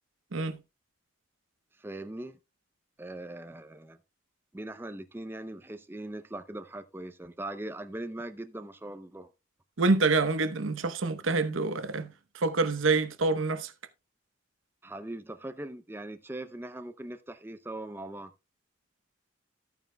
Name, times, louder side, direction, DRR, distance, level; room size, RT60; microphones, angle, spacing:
voice 1, 1.8-2.4 3.0-4.0 4.5-9.3 14.8-18.3, right 1 dB, 10° right, 0.5 m, -40 dB
voice 2, 9.8-12.1 12.3-13.7, right 3 dB, 85° right, 0.9 m, -26 dB
13.5 x 9.1 x 2.2 m
head